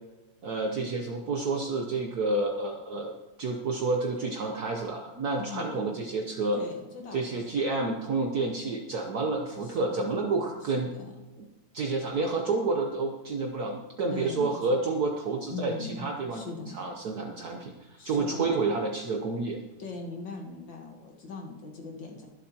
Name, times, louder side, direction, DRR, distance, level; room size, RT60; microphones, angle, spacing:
voice 1, 0.4-3.1 3.4-6.6 7.1-10.9 11.4-11.5 11.7-16.4 16.7-19.6, right 3 dB, 60° right, 2 dB, 1.3 m, -29 dB
voice 2, 5.4-6.0 6.5-7.6 9.6-10.1 10.7-11.2 14.1-14.5 15.5-16.8 18.0-18.5 19.8-22.3, left 4 dB, 70° left, 1 dB, 2.1 m, -40 dB
22.5 x 8.1 x 2.9 m, 1.1 s
omnidirectional pair, 2.1 m